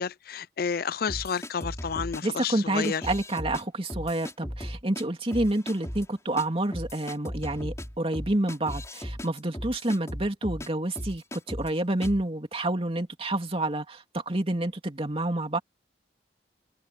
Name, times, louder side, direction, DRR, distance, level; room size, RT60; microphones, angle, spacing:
voice 1, 0.0-3.0, left 6 dB, 55° left, 0.5 m, -30 dB
sound 1, 1.1-2.2 2.8-3.6 3.9-5.0 5.3-6.1 6.4-6.5 6.7-10.7 11.0-11.7 12.0-12.2, equal, 15° left, 6.9 m, -37 dB
voice 2, 2.2-15.6, right 1 dB, 30° right, 2.6 m, -28 dB
head